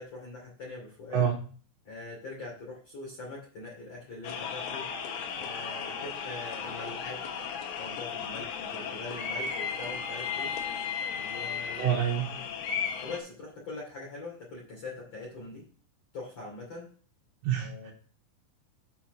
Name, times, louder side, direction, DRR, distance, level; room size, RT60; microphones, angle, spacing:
voice 1, 0.0-1.2 1.8-4.9 5.4-7.2 7.8-10.5 11.2-12.0 13.0-15.6 16.1-16.9 17.6-17.9, left 2 dB, 40° left, -4 dB, 2.9 m, -42 dB
sound 1, 4.2-13.2, left 6 dB, 70° left, 3.1 m, -35 dB
voice 2, 11.8-12.3 17.4-17.9, right 9 dB, 80° right, -2 dB, 3.6 m, -27 dB
8.5 x 4.6 x 6.1 m, 0.41 s
omnidirectional pair, 6.0 m